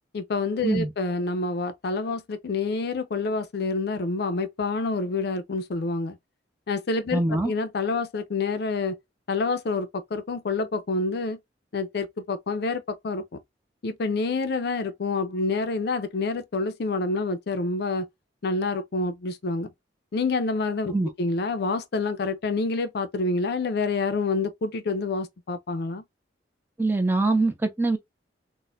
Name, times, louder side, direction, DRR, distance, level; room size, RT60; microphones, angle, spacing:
voice 1, 0.1-6.2 6.7-9.0 9.3-11.4 11.7-13.3 13.8-18.1 18.4-19.7 20.1-26.0, left 3 dB, 60° left, 0.4 m, -27 dB
voice 2, 7.1-7.5 20.9-21.1 26.8-28.0, right 2 dB, 10° right, 0.4 m, -23 dB
4.0 x 2.1 x 2.4 m
head